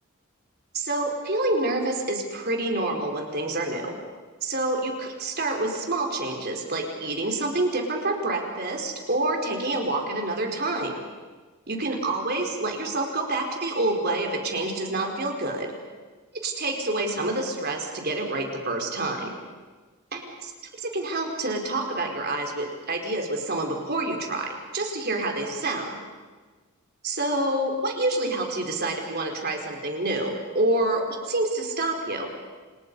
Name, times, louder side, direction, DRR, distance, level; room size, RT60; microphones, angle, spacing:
voice 1, 0.7-3.9 4.4-10.9 11.7-15.7 16.4-19.3 20.1-26.0 27.0-32.3, right 2 dB, 45° right, 2 dB, 4.4 m, -27 dB
29.0 x 28.5 x 5.5 m, 1.4 s
head